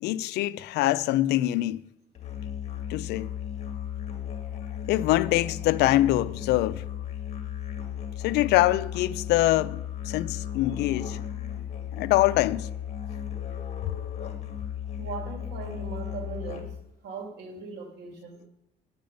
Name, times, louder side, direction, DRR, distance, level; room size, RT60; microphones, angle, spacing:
voice 1, 0.0-1.8 2.9-3.3 4.9-6.8 8.2-11.6 11.9-12.7 13.8-13.9, left 15 dB, 85° left, 0.5 m, -24 dB
Musical instrument, 2.1-16.9, left 10 dB, 40° left, 2.2 m, -35 dB
voice 2, 15.0-16.8 17.0-18.5, right 5 dB, 75° right, 2.4 m, -39 dB
9.6 x 9.4 x 5.2 m
cardioid pair, 110°, 17 cm